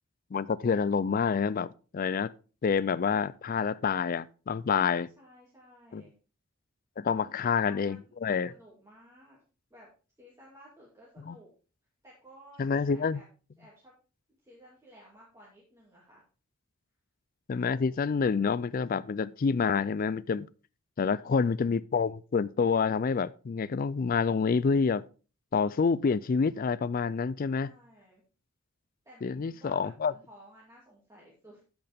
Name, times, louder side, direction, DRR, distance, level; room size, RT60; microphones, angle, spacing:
voice 1, 0.3-2.3 2.6-5.1 5.9-6.0 7.0-8.5 11.3-11.4 12.6-13.2 17.5-20.5 21.0-25.0 25.5-27.7 29.2-30.1, left 5 dB, 40° left, 0.3 m, -28 dB
voice 2, 4.7-6.1 7.1-9.4 9.7-9.9 10.2-11.5 12.0-13.2 13.6-13.9 14.4-16.2 21.0-21.5 27.5-28.2 29.0-31.6, equal, 15° right, 2.4 m, -55 dB
10.5 x 7.9 x 3.5 m
head